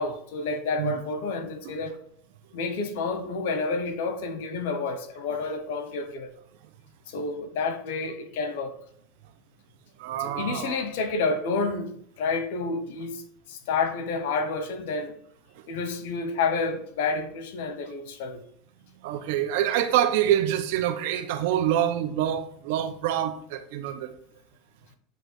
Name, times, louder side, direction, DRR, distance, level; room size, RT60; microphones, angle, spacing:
voice 1, 0.0-1.9 2.5-6.3 7.1-8.8 10.2-13.2 13.5-15.1 15.7-18.4, left 4 dB, 75° left, 1.0 m, -29 dB
voice 2, 10.0-10.8 19.0-24.1, right 11 dB, 70° right, 0.8 m, -26 dB
8.3 x 3.1 x 4.5 m
supercardioid pair, 120°, 0 cm